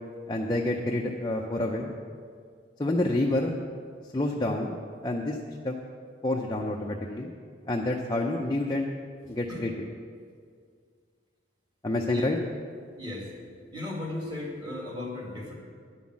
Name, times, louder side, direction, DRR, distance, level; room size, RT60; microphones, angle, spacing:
voice 1, 0.3-1.9 2.8-3.6 4.1-4.8 5.0-5.4 5.6-5.8 6.2-7.3 7.7-8.9 9.3-9.7 11.8-12.4, left 1 dB, 20° left, 0 dB, 0.5 m, -28 dB
voice 2, 13.0-13.3 13.7-15.5, left 2 dB, 25° right, -3 dB, 1.9 m, -36 dB
10.5 x 5.5 x 7.3 m, 2.1 s
head